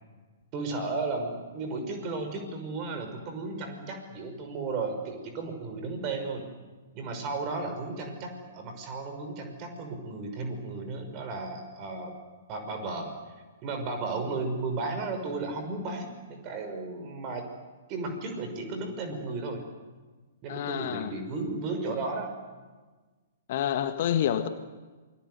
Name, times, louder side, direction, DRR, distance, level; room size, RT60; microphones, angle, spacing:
voice 1, 0.5-6.5 6.9-12.2 12.5-13.1 13.6-17.5 17.9-19.7 20.4-22.3, right 3 dB, 30° right, 6 dB, 5.8 m, -34 dB
voice 2, 20.5-21.1 23.5-24.5, left 10 dB, 45° left, 9 dB, 1.6 m, -28 dB
28.0 x 22.0 x 8.1 m, 1.3 s
figure-of-eight pair, 115°, 0 cm